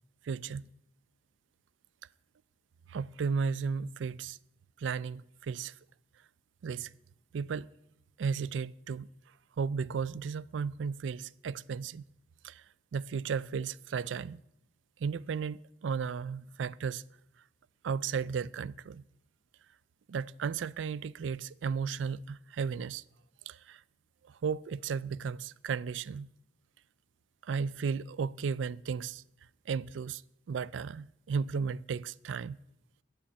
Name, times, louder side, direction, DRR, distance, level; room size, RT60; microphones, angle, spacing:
voice 1, 0.2-0.7 2.9-4.4 4.8-5.7 6.6-6.9 7.3-7.7 8.2-9.1 9.6-12.1 12.4-12.6 12.9-14.4 15.0-17.0 17.8-19.0 20.1-23.0 23.5-23.8 24.2-26.3 27.4-29.2 29.7-30.2 30.5-32.6, right 6 dB, 85° right, 0.4 m, -34 dB
10.0 x 9.3 x 8.7 m
head